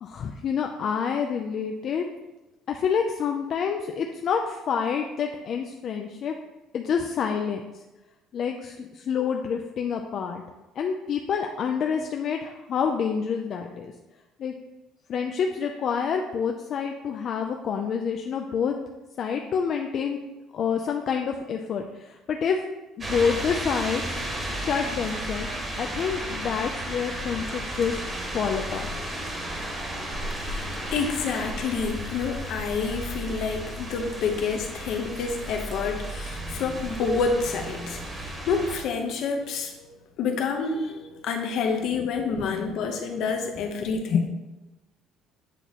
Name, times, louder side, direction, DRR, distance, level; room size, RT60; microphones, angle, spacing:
voice 1, 0.0-2.1 2.7-6.3 6.7-7.6 8.3-10.4 10.8-13.9 14.4-14.6 15.1-18.7 19.2-20.2 20.5-22.6 23.0-24.0 24.5-25.5 25.8-28.0 28.3-28.9 42.4-42.8 44.1-44.3, left 6 dB, 40° left, 3 dB, 0.4 m, -27 dB
sound 1, 23.0-38.8, right 1 dB, 20° right, 1.1 m, -33 dB
voice 2, 30.3-39.9 40.2-44.2, left 5 dB, 60° left, 4 dB, 0.8 m, -28 dB
8.1 x 2.9 x 4.1 m, 1.1 s
cardioid pair, 155°, 0 cm